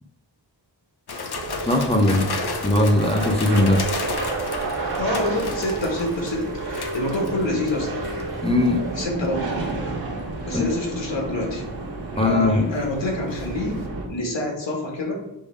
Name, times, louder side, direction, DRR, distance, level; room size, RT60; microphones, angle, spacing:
sound 1, 1.1-7.8 8.2-8.5 9.2-9.7 11.9-13.5 13.8-13.9, left 4 dB, 60° left, 1.0 m, -33 dB
sound 2, 1.3-14.1, right 3 dB, 55° right, 1.7 m, -32 dB
voice 1, 1.6-2.3 2.6-3.9 8.4-8.9 10.5-10.6 12.2-12.7, left 2 dB, 15° left, 4 dB, 0.6 m, -19 dB
Rain, 3.4-9.0, right 2 dB, 10° right, 1.4 m, -34 dB
voice 2, 4.9-8.1 8.9-9.5 10.4-11.6 12.2-13.8 14.1-15.1, left 1 dB, 80° left, -1 dB, 2.1 m, -27 dB
7.0 x 3.4 x 4.8 m, 0.93 s
wide cardioid pair, 105°, 44 cm